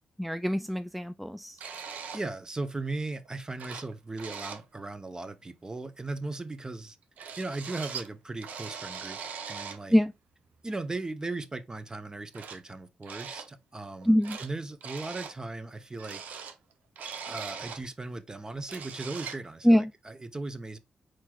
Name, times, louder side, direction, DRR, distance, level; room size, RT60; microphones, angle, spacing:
voice 1, 0.2-1.6 9.9-10.1 14.0-14.4 19.6-19.9, equal, ahead, 0.3 m, -24 dB
sound 1, 1.6-2.3 3.2-3.3 3.6-3.9 4.2-4.6 7.2-8.1 8.4-9.8 11.3-11.4 12.3-12.6 13.0-13.5 13.8-14.5 14.8-15.3 16.0-17.9 18.3-18.4 18.6-19.4, right 6 dB, 80° right, 0.7 m, -40 dB
voice 2, 2.1-7.0 7.4-9.2 9.5-10.0 10.6-16.4 17.2-20.8, right 2 dB, 25° right, 0.9 m, -37 dB
4.6 x 4.5 x 2.4 m
cardioid pair, 55°, 3 cm